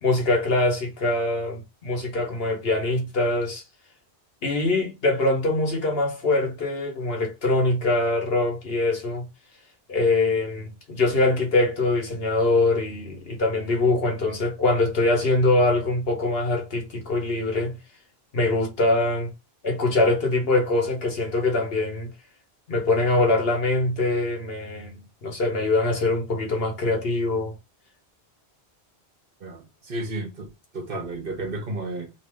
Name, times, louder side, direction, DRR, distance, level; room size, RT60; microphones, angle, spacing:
voice 1, 0.0-3.6 4.4-9.3 9.9-17.8 18.3-19.3 19.6-22.1 22.7-27.5, left 2 dB, 65° left, 1.3 m, -23 dB
voice 2, 29.4-32.1, right 2 dB, 60° right, 1.1 m, -33 dB
2.9 x 2.7 x 3.4 m
omnidirectional pair, 1.1 m